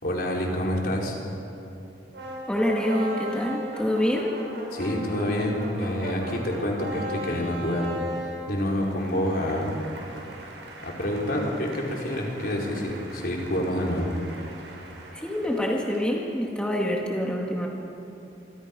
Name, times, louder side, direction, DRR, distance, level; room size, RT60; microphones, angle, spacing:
voice 1, 0.0-1.2 4.7-7.9 8.5-9.8 10.8-14.1, left 1 dB, 60° left, -2 dB, 4.7 m, -27 dB
sound 1, 2.1-16.3, equal, 85° right, 5.7 m, -39 dB
voice 2, 2.5-4.4 15.2-17.7, equal, 5° left, -2 dB, 2.4 m, -26 dB
27.5 x 26.0 x 5.5 m, 2.9 s
head